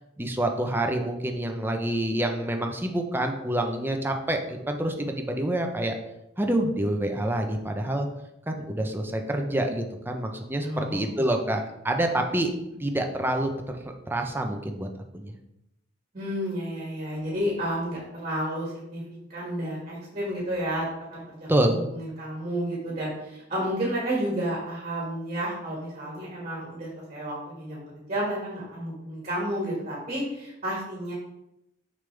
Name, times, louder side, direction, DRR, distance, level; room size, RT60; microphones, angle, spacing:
voice 1, 0.2-5.9 6.4-8.1 8.5-12.5 12.8-14.9 15.1-15.3 21.5-21.8, right 1 dB, 10° right, 4 dB, 0.7 m, -27 dB
voice 2, 10.6-11.2 16.1-19.0 19.3-31.1, equal, 35° right, -5 dB, 1.9 m, -31 dB
6.7 x 5.3 x 3.4 m, 0.86 s
head